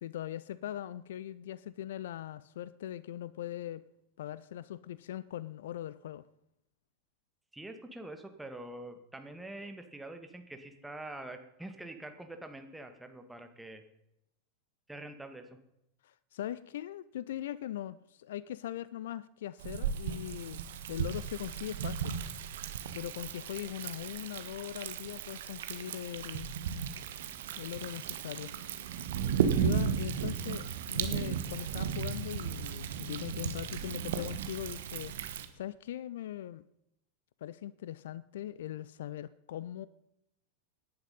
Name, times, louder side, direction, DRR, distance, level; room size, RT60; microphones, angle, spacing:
voice 1, 0.0-3.8 4.2-6.2 16.0-22.2 22.9-26.5 27.6-28.5 29.6-35.1 35.5-36.6 37.4-39.9, left 12 dB, 60° left, 19 dB, 0.5 m, -40 dB
voice 2, 7.5-13.8 14.9-15.6, right 1 dB, 5° right, 6 dB, 2.0 m, -45 dB
Thunder, 19.6-35.5, right 7 dB, 60° right, 1.6 m, -35 dB
18.5 x 10.5 x 5.4 m, 0.83 s
figure-of-eight pair, 90°, 0 cm